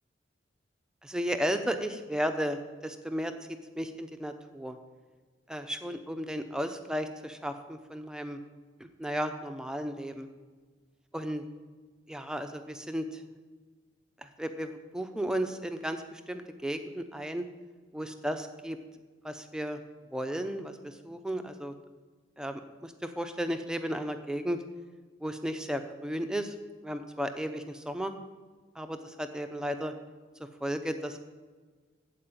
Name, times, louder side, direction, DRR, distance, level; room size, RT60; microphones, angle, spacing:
voice 1, 1.0-3.3 3.8-4.8 5.5-8.4 8.8-10.3 11.1-11.4 12.1-13.2 14.2-17.4 17.9-18.8 19.2-19.8 20.1-21.7 22.4-24.6 25.2-26.5 26.8-28.1 28.8-29.9 30.6-31.2, equal, 5° right, 7 dB, 0.8 m, -34 dB
14.5 x 4.9 x 8.8 m, 1.4 s
head